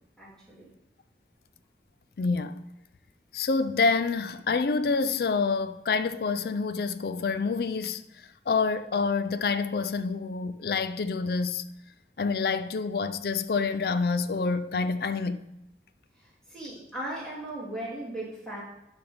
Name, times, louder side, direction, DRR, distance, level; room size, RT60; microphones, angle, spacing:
voice 1, 0.2-0.7 16.2-18.6, right 1 dB, 5° left, 2.6 m, -38 dB
voice 2, 2.2-2.6 3.3-11.7 12.2-15.4, left 4 dB, 60° left, 0.4 m, -27 dB
11.5 x 4.0 x 3.5 m
head